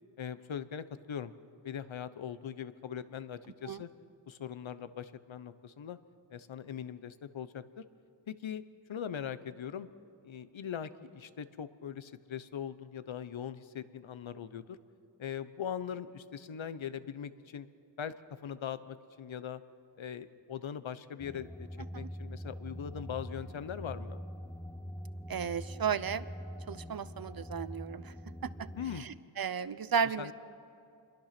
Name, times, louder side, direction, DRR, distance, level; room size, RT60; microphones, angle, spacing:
voice 1, 0.2-1.3 1.6-3.9 4.3-6.0 6.3-7.8 8.3-8.6 8.9-9.9 10.2-14.8 15.2-17.7 18.0-18.1 18.4-19.6 20.0-21.7 21.9-24.2 28.8-29.1 30.0-30.3, left 8 dB, 80° left, 13 dB, 1.0 m, -41 dB
sound 1, 21.2-29.0, equal, 10° left, 0.7 m, -44 dB
voice 2, 25.3-26.2 26.7-28.1 28.6-28.7 29.0-30.3, right 7 dB, 50° right, 15 dB, 0.8 m, -34 dB
27.5 x 22.5 x 6.0 m, 2.6 s
wide cardioid pair, 105°, 46 cm